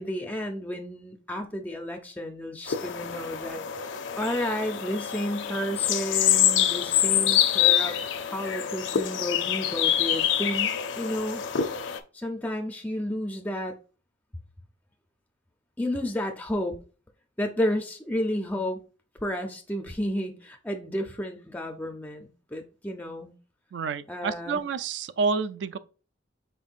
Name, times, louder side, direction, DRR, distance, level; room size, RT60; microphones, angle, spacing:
voice 1, 0.0-11.4 12.1-13.8 15.8-16.8 17.4-18.8 19.2-23.3 24.1-24.6, left 1 dB, 10° left, 0.4 m, -32 dB
sound 1, 2.7-12.0, left 10 dB, 70° left, 0.5 m, -26 dB
voice 2, 23.7-25.8, right 4 dB, 65° right, 0.3 m, -29 dB
5.3 x 4.0 x 2.4 m
head